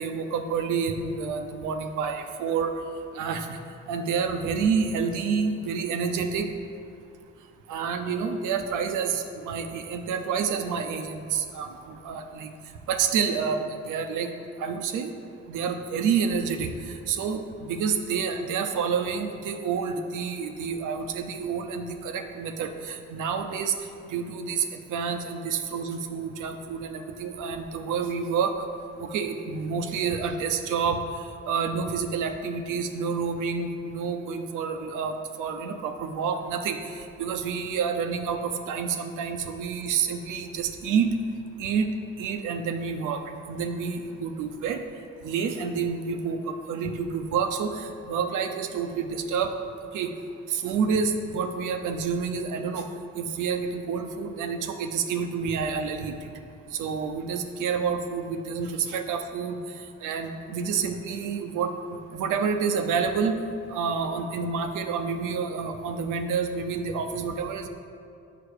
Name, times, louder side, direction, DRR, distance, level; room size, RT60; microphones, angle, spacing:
voice 1, 0.0-2.7 3.1-3.6 3.9-6.5 7.7-12.5 12.9-14.3 14.6-15.1 15.5-16.7 17.1-23.7 24.1-28.5 29.0-31.0 31.5-36.8 37.2-41.1 41.6-41.9 42.2-44.8 45.2-49.5 49.9-50.1 50.5-52.9 53.1-56.1 56.7-59.6 60.0-61.7 62.1-63.4 63.7-67.7, right 6 dB, 85° right, 7 dB, 0.7 m, -28 dB
6.8 x 5.8 x 4.8 m, 2.5 s
cardioid pair, 90°, 30 cm